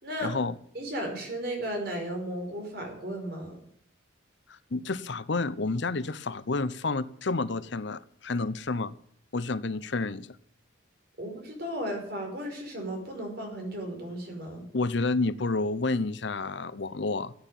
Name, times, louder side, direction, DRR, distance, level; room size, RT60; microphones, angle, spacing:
voice 1, 0.2-0.5 4.5-9.0 9.3-10.3 14.7-17.3, left 3 dB, 60° left, 16 dB, 0.7 m, -30 dB
voice 2, 0.7-3.6 11.2-14.6, right 1 dB, 50° right, 3 dB, 5.2 m, -35 dB
14.0 x 9.0 x 9.2 m, 0.65 s
head